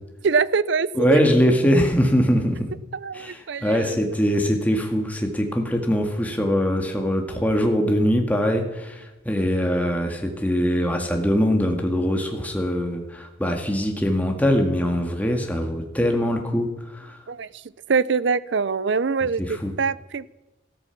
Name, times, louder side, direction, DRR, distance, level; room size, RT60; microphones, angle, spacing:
voice 1, 0.2-1.2 2.9-4.2 17.3-17.6 17.9-20.3, right 5 dB, 60° right, 19 dB, 0.5 m, -24 dB
voice 2, 1.0-2.7 3.1-17.2 19.4-19.7, equal, 10° left, 3 dB, 1.8 m, -22 dB
14.0 x 13.0 x 5.9 m, 1.1 s
head